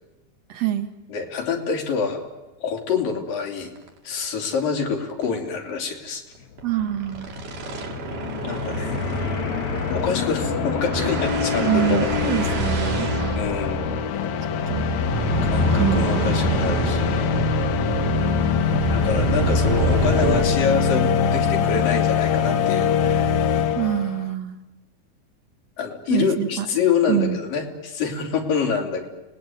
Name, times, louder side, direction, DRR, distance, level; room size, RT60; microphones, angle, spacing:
voice 1, 0.5-0.9 6.6-7.4 11.6-13.1 14.7-14.9 15.8-16.3 23.7-24.5 26.1-26.7 27.1-27.4, right 12 dB, 55° right, 9 dB, 2.8 m, -25 dB
voice 2, 1.1-2.2 2.6-3.7 4.0-6.2 8.4-9.0 9.6-12.6 13.4-13.9 15.5-17.4 18.8-23.3 25.8-29.1, left 6 dB, 85° left, 2 dB, 4.9 m, -26 dB
sound 1, 3.8-3.9 4.2-4.3 4.6-4.8 5.1-5.3 6.6-20.4, right 1 dB, 70° right, 4.5 m, -26 dB
sound 2, 6.5-6.6 6.8-24.3, left 6 dB, 65° left, 2.4 m, -24 dB
30.0 x 19.5 x 9.3 m, 1.1 s
omnidirectional pair, 3.8 m